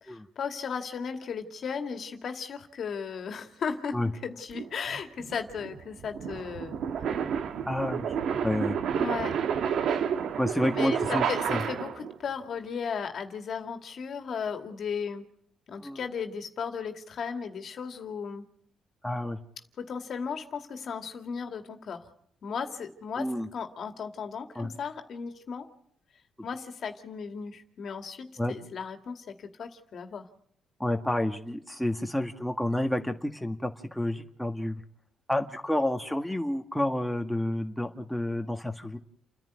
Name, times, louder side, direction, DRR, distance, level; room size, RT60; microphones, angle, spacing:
voice 1, 0.0-3.9 4.2-7.3 8.9-9.4 10.5-15.2 15.7-18.4 19.8-22.0 22.4-23.3 23.5-25.7 26.4-30.3, left 6 dB, 60° left, 6 dB, 2.2 m, -36 dB
sound 1, 4.5-12.1, right 7 dB, 70° right, 1.4 m, -30 dB
voice 2, 7.7-8.2 8.4-8.8 10.4-11.2 11.5-11.6 15.8-16.0 19.0-19.4 23.2-23.5 24.6-24.7 28.4-28.5 30.8-34.8 35.3-39.0, left 1 dB, 5° left, 4 dB, 1.6 m, -29 dB
30.0 x 10.5 x 9.5 m, 0.71 s
cardioid pair, 90°, 0 cm